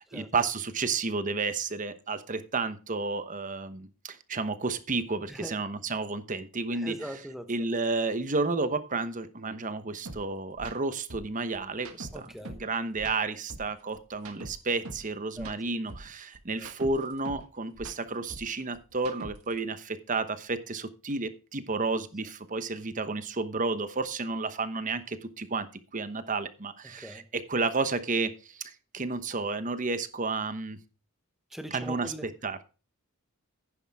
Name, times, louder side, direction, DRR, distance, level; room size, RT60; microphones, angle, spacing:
voice 1, 0.0-7.0 7.5-30.8 31.7-32.6, right 3 dB, 35° right, 1.0 m, -31 dB
voice 2, 6.7-7.5 12.1-12.6 15.4-15.5 16.5-16.7 26.8-27.3 31.5-32.3, equal, ahead, 1.1 m, -41 dB
sound 1, 10.1-10.2 10.5-10.7 11.1-12.7 13.0-15.1 15.4-17.5 17.7-19.6, right 2 dB, 75° right, 1.6 m, -43 dB
10.5 x 10.0 x 3.5 m
head